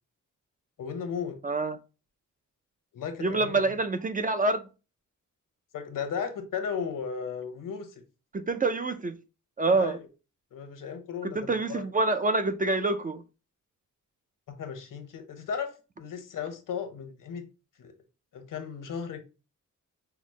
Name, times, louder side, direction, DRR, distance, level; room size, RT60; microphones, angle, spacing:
voice 1, 0.8-1.4 2.9-3.6 5.7-7.9 9.7-10.1 10.5-11.9 14.5-17.5 17.8-17.9 18.3-19.2, left 6 dB, 75° left, 0.8 m, -35 dB
voice 2, 1.4-1.8 3.2-4.7 8.3-9.2 9.6-10.0 11.2-13.2, right 3 dB, 25° right, 0.3 m, -26 dB
5.7 x 2.0 x 3.1 m
wide cardioid pair, 120°, 32 cm